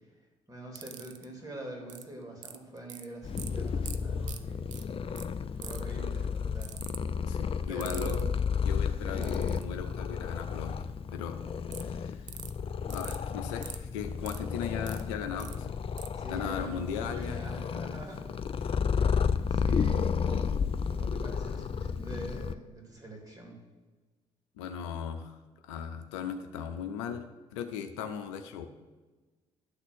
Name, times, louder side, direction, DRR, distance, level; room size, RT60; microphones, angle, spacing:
voice 1, 0.5-4.7 5.5-6.7 7.7-8.2 9.0-9.4 16.1-18.3 18.9-20.6 20.9-23.6, right 1 dB, 25° right, 0 dB, 3.3 m, -44 dB
sound 1, 0.8-1.2 1.9-2.0 2.4-3.0 3.4-3.5 3.9-4.0 4.2-4.4 4.7-4.8 5.2-5.3 5.6-5.9 6.6-7.0 7.8-8.2 9.2-9.6 11.7-11.8 12.3-12.5 12.9-13.2 13.6-13.8 14.3-15.0 15.4-15.5 16.0-16.1, right 10 dB, 90° right, 0.4 m, -42 dB
Purr, 3.2-22.5, left 6 dB, 35° left, 0.5 m, -32 dB
voice 2, 7.2-8.2 8.6-11.4 11.8-12.2 12.9-15.7 16.2-17.4 18.7-18.8 24.6-25.3 25.6-27.2 27.5-28.7, left 7 dB, 80° left, 7 dB, 0.6 m, -37 dB
11.5 x 4.1 x 6.3 m, 1.2 s
hypercardioid pair, 45°, 15 cm